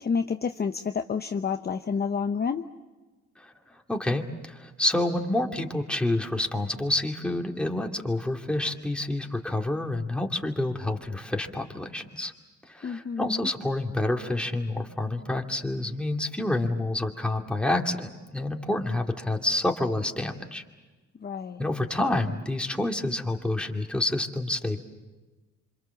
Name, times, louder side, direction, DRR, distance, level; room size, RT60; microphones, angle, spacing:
voice 1, 0.0-2.7 12.8-13.5 21.2-21.7, left 6 dB, 30° left, 7 dB, 0.9 m, -29 dB
voice 2, 3.4-12.3 12.7-20.6 21.6-24.8, left 1 dB, 5° left, 2 dB, 2.6 m, -28 dB
27.0 x 26.5 x 7.2 m, 1.2 s
cardioid pair, 90°, 30 cm